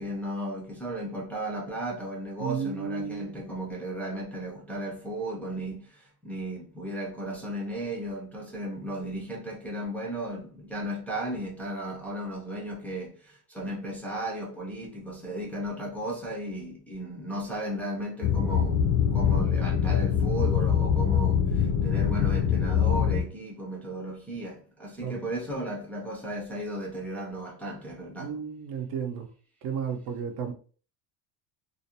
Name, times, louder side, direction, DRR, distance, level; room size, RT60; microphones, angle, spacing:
voice 1, 0.0-28.4, right 1 dB, 5° left, 0.4 m, -35 dB
voice 2, 2.4-3.4 25.0-25.2 28.2-29.3 29.6-30.5, right 7 dB, 60° right, 0.6 m, -33 dB
sound 1, 18.2-23.2, left 8 dB, 70° left, 0.6 m, -24 dB
2.5 x 2.1 x 2.7 m
cardioid pair, 135°, 42 cm